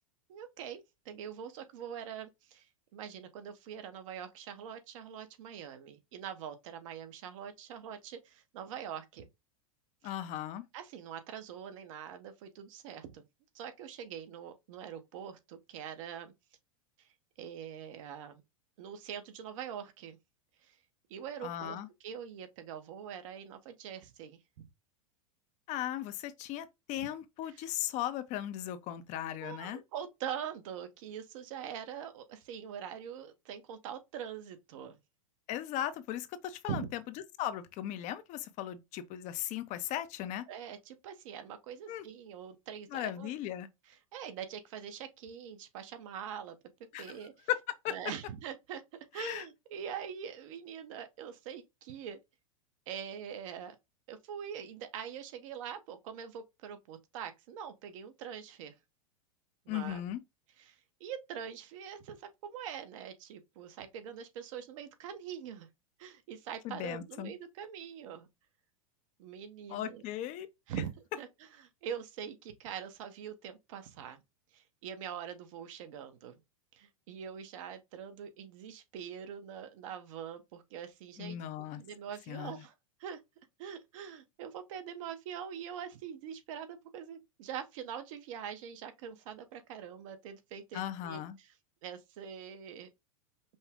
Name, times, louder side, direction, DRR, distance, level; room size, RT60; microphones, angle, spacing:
voice 1, 0.3-2.7 2.9-9.3 10.0-10.1 10.7-13.2 13.5-16.3 17.0-17.1 17.4-18.4 18.8-20.2 20.6-20.8 21.1-24.7 27.4-27.7 29.4-35.0 36.7-36.9 40.5-43.3 43.9-46.6 47.0-47.5 47.9-48.8 49.1-52.2 52.9-53.7 54.1-58.7 59.7-60.0 60.6-65.7 66.0-68.3 69.2-70.0 70.7-74.2 74.5-76.4 76.7-81.4 81.7-82.7 83.0-83.2 83.6-91.6 91.8-92.9, right 8 dB, 65° right, 1.0 m, -43 dB
voice 2, 10.0-10.6 21.4-21.9 25.7-29.8 35.5-37.0 37.4-40.4 41.9-42.0 42.9-43.7 46.9-47.1 47.5-47.6 47.8-47.9 49.2-49.4 59.7-60.2 66.6-67.3 69.7-70.5 81.2-81.8 82.3-82.6 90.7-91.4, left 12 dB, 45° left, 0.7 m, -37 dB
5.4 x 2.3 x 3.5 m
hypercardioid pair, 115°, 18 cm